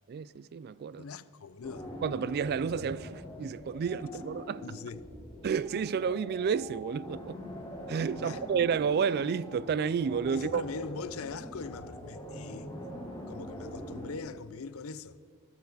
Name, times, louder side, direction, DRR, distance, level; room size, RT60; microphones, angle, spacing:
voice 1, 0.1-1.0 2.0-4.6 5.4-7.4 7.9-10.6, right 6 dB, 45° right, 0.3 m, -31 dB
voice 2, 0.9-1.9 4.6-5.0 8.1-8.4 10.3-12.8 13.3-15.2, left 4 dB, 70° left, 0.5 m, -41 dB
sound 1, 1.6-14.1, equal, 15° left, 2.8 m, -43 dB
15.0 x 12.0 x 4.0 m
head